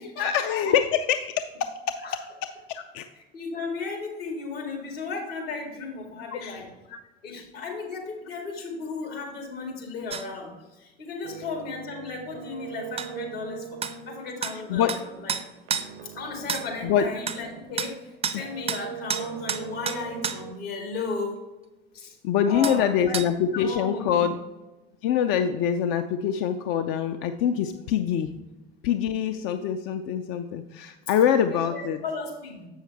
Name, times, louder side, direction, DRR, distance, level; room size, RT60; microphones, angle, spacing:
voice 1, 0.2-1.3 1.6-2.0 2.7-3.1 6.3-6.6 6.9-7.0 7.3-7.4 14.7-14.9 16.8-17.1 18.3-18.4 22.2-24.4 25.0-28.3 28.8-32.0, left 8 dB, 45° left, 8 dB, 0.5 m, -24 dB
voice 2, 3.1-6.7 7.2-13.8 14.1-15.3 16.0-21.4 21.9-22.2 22.5-24.3 31.4-32.7, left 4 dB, 70° left, 1 dB, 2.1 m, -35 dB
sound 1, 10.1-10.3 13.0-13.1 13.8-13.9 14.4-14.6 14.9-15.0 15.3-15.9 16.5-16.7 17.3-17.4 17.8-17.9 18.2-18.4 18.7-18.8 19.1-20.4 22.6-22.8 23.1-23.3, right 7 dB, 20° right, 0.5 m, -29 dB
sound 2, 11.2-17.9 18.3-20.5, right 9 dB, 55° right, 0.7 m, -41 dB
7.6 x 6.4 x 3.4 m, 1.1 s
figure-of-eight pair, 70°, 31 cm